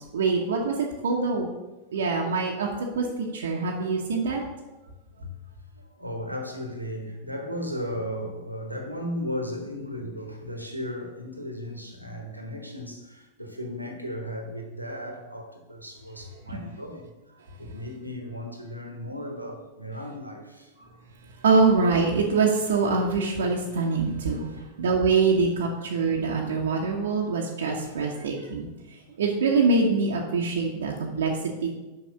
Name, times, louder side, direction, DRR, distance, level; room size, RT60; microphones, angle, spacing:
voice 1, 0.1-1.5 1.9-2.7 2.9-4.4 16.5-16.6 21.4-24.5 24.8-28.7 29.2-31.7, right 4 dB, 65° right, -1 dB, 1.0 m, -24 dB
voice 2, 5.7-17.1 17.6-20.7 24.3-24.6 27.8-28.4, equal, 90° right, 3 dB, 1.3 m, -36 dB
5.9 x 5.3 x 6.5 m, 1.1 s
figure-of-eight pair, 90°, 0 cm